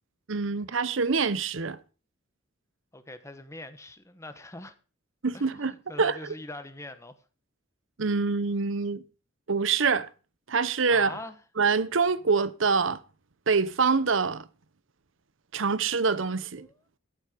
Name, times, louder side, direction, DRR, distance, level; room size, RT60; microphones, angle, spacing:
voice 1, 0.3-1.8 5.2-6.2 8.0-9.0 9.5-10.1 10.5-11.2 11.6-13.0 13.5-14.5 15.5-16.7, right 5 dB, 65° right, 0.8 m, -25 dB
voice 2, 2.9-4.7 5.3-7.2 10.9-11.4 16.6-16.8, left 2 dB, 15° left, 1.2 m, -42 dB
14.0 x 9.7 x 5.1 m
head